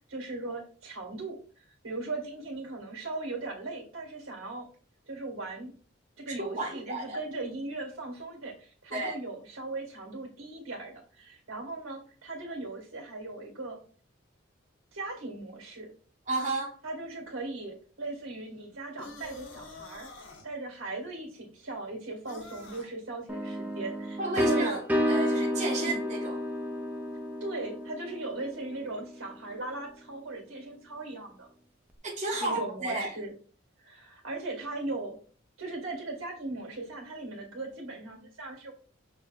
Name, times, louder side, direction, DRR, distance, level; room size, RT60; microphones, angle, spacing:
voice 1, 0.1-1.4 1.8-4.6 5.1-5.7 6.2-13.8 14.9-15.9 16.8-20.1 20.4-24.8 25.7-26.0 27.4-31.5 32.4-33.3 33.8-35.2 35.6-38.7, right 2 dB, 85° right, 1.6 m, -38 dB
voice 2, 6.3-7.2 8.9-9.2 16.3-16.7 24.2-24.8 25.1-26.4 32.0-33.1, right 2 dB, 35° right, 0.8 m, -32 dB
sound 1, 19.0-20.5 22.2-22.9, left 2 dB, 65° left, 0.8 m, -46 dB
sound 2, 23.3-29.0, equal, 10° right, 0.4 m, -31 dB
5.9 x 2.7 x 2.2 m
head